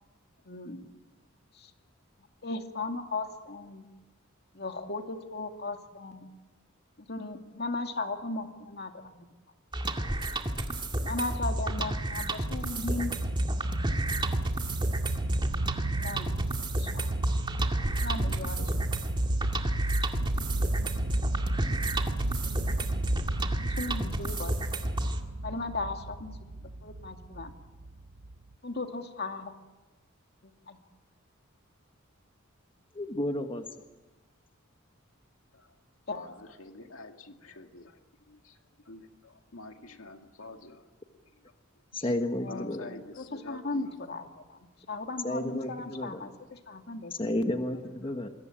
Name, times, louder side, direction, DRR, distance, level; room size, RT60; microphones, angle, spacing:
voice 1, 0.5-0.9 1.5-1.7 2.4-3.9 4.5-6.3 7.0-9.2 11.0-13.2 16.0-16.3 16.6-17.2 18.0-18.7 23.6-24.5 25.0-25.1 25.4-26.4 26.8-27.5 28.6-29.5 30.4-30.8 36.1-36.3 42.4-44.6 44.9-47.1 47.7-47.8, left 3 dB, 50° left, 5 dB, 2.5 m, -37 dB
sound 1, 9.7-25.2, right 1 dB, 25° right, 2.2 m, -31 dB
sound 2, 11.5-28.5, right 2 dB, 70° right, 1.0 m, -34 dB
voice 2, 32.9-33.6 41.9-42.9 45.2-46.2 47.2-48.3, left 1 dB, 25° left, 6 dB, 1.4 m, -31 dB
voice 3, 36.1-38.0 38.3-38.6 38.9-40.8 42.0-42.1 42.5-43.9 46.7-46.8 48.0-48.1, left 2 dB, 80° left, 5 dB, 2.1 m, -48 dB
28.0 x 22.0 x 8.9 m, 1.2 s
head